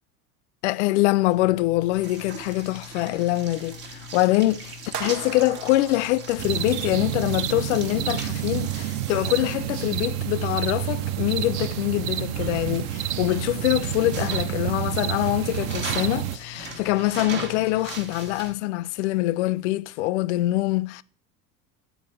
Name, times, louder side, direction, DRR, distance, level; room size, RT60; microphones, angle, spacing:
voice 1, 0.6-21.0, left 17 dB, 50° left, 0.4 m, -24 dB
sound 1, 1.3-18.5, right 2 dB, 60° right, 1.5 m, -40 dB
sound 2, 4.9-7.2, right 8 dB, 80° right, 0.6 m, -38 dB
sound 3, 6.4-16.4, right 13 dB, 40° right, 0.4 m, -29 dB
9.1 x 4.5 x 7.5 m
figure-of-eight pair, 70°, 47 cm